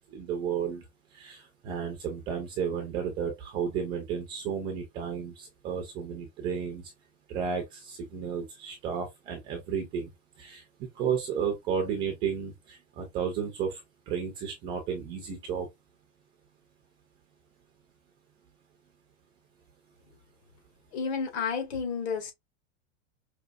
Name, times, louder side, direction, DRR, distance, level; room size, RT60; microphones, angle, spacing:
voice 1, 0.1-0.8 1.1-6.8 7.3-10.1 10.4-13.8 14.1-15.7, right 7 dB, 15° right, 0.3 m, -33 dB
voice 2, 20.9-22.3, left 5 dB, 65° left, 2.0 m, -31 dB
5.1 x 2.8 x 2.3 m
supercardioid pair, 170°, 36 cm